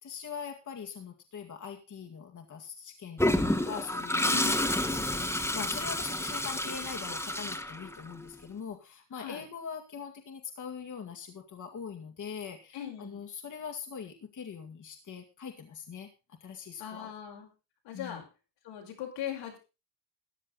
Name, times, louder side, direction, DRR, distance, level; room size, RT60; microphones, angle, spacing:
voice 1, 0.0-16.1 16.4-17.1 17.9-18.2, left 6 dB, 45° left, 4 dB, 2.0 m, -42 dB
Toilet flush, 3.2-8.2, left 1 dB, 5° left, 1.6 m, -30 dB
voice 2, 4.2-4.7 9.1-9.4 12.7-13.2 16.8-17.5 17.8-18.2 18.6-19.6, left 10 dB, 85° left, 0 dB, 5.2 m, -40 dB
14.5 x 10.0 x 3.9 m, 0.29 s
cardioid pair, 100°, 41 cm